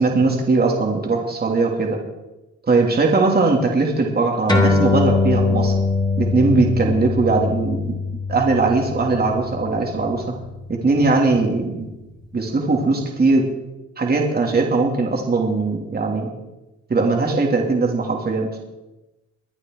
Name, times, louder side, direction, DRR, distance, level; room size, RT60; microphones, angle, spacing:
voice 1, 0.0-2.0 2.7-5.8 6.2-8.0 8.3-10.2 10.8-11.9 12.3-13.4 14.0-16.3 16.9-18.6, right 3 dB, 30° right, 1 dB, 3.0 m, -19 dB
sound 1, 4.5-11.3, left 3 dB, 15° left, 3.5 m, -23 dB
24.0 x 9.5 x 4.7 m, 1.0 s
cardioid pair, 90°, 30 cm